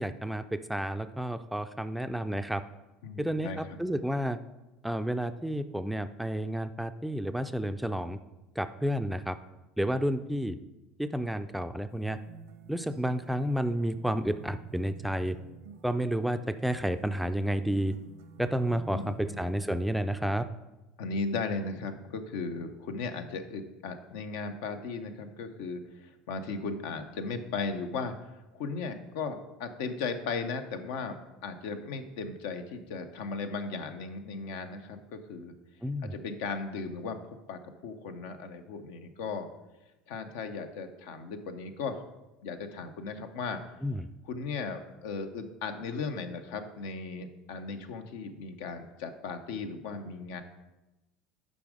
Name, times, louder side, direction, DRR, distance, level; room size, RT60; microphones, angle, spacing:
voice 1, 0.0-2.6 3.2-4.4 4.8-8.2 8.6-9.4 9.8-10.6 11.0-12.2 12.7-15.4 15.8-17.9 18.4-20.5 35.8-36.1 43.8-44.1, equal, ahead, 10 dB, 0.4 m, -31 dB
voice 2, 3.0-3.8 18.9-19.4 21.0-35.5 36.0-39.5 40.1-42.0 42.4-43.6 44.2-50.4, left 4 dB, 80° left, 7 dB, 0.7 m, -37 dB
sound 1, 11.9-19.9, right 6 dB, 85° right, 0.8 m, -50 dB
7.0 x 5.2 x 4.9 m, 1.0 s
supercardioid pair, 100°, 0 cm